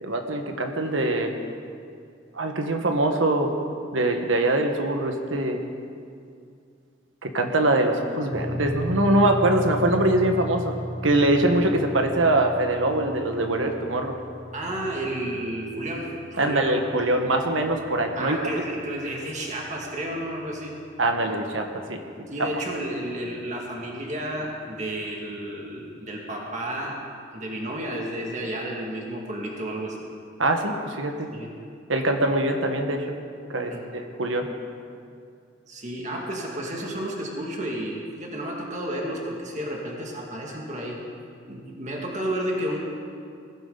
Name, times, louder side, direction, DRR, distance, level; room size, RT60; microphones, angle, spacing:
voice 1, 0.0-1.3 2.3-3.5 3.9-5.6 7.2-10.7 11.0-14.1 16.4-18.4 21.0-22.0 30.4-31.3 31.9-33.1 33.5-34.5, right 1 dB, 85° right, 4 dB, 1.5 m, -23 dB
sound 1, 8.3-22.7, equal, 15° left, 2.0 m, -37 dB
voice 2, 14.5-16.8 18.2-20.8 22.3-27.0 27.3-30.0 31.3-31.5 33.7-33.8 35.7-41.0 41.5-42.8, right 1 dB, 40° right, -2 dB, 2.3 m, -31 dB
21.0 x 15.5 x 4.1 m, 2.3 s
head